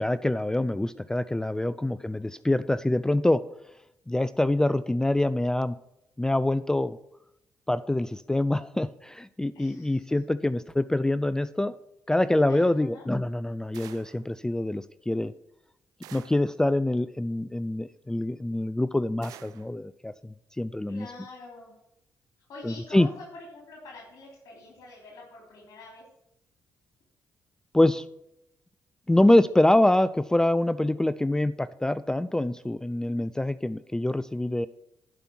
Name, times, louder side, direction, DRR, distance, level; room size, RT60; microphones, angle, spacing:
voice 1, 0.0-3.4 4.1-5.8 6.2-7.0 7.7-11.8 12.1-15.3 16.1-21.1 22.6-23.1 27.7-28.1 29.1-34.7, left 1 dB, 10° left, 16 dB, 0.4 m, -25 dB
voice 2, 1.7-2.1 9.5-10.2 12.5-13.1 20.9-21.7 22.5-26.1, left 2 dB, 70° left, -2 dB, 3.2 m, -46 dB
sound 1, 13.7-14.3 16.0-16.5 19.2-19.7, right 12 dB, 85° right, 0.5 m, -48 dB
11.0 x 5.3 x 6.2 m, 0.82 s
supercardioid pair, 60°, 6 cm